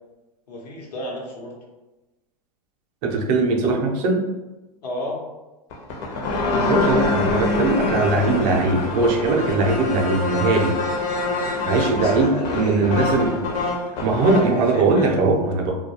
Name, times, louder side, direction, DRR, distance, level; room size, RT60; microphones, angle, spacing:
voice 1, 0.5-1.5 3.6-3.8 4.8-5.2 11.9-13.0 14.4-15.3, left 1 dB, 85° left, -2 dB, 0.8 m, -32 dB
voice 2, 3.0-4.2 6.7-10.7 11.7-13.5 14.0-15.8, right 3 dB, 45° right, 1 dB, 0.5 m, -20 dB
sound 1, 5.7-14.6, left 2 dB, 50° left, 0.6 m, -24 dB
2.2 x 2.2 x 2.8 m, 1.1 s
hypercardioid pair, 120°, 20 cm